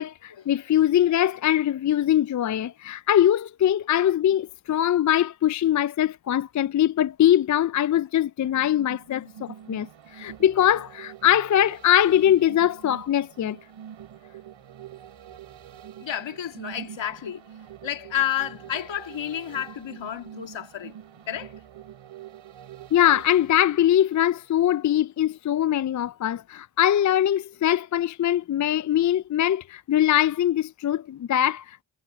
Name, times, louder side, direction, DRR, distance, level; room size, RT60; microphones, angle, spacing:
voice 1, 0.0-9.9 10.1-13.6 22.9-31.8, left 11 dB, 40° left, 0.5 m, -22 dB
sound 1, 8.4-24.7 25.0-25.1, right 10 dB, 75° right, 3.6 m, -45 dB
voice 2, 16.0-17.4 17.8-21.0 21.3-21.5, left 10 dB, 75° left, 2.8 m, -31 dB
supercardioid pair, 50°, 46 cm